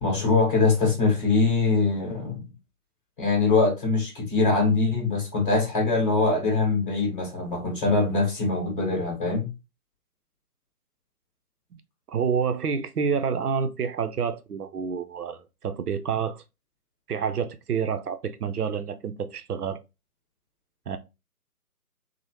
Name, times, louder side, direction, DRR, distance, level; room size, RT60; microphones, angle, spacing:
voice 1, 0.0-2.4 3.2-9.5, left 3 dB, 30° left, 1.5 m, -23 dB
voice 2, 12.1-16.4 17.1-19.8 20.9-21.0, right 6 dB, 70° right, 0.5 m, -28 dB
3.1 x 2.0 x 2.9 m
figure-of-eight pair, 155°, 48 cm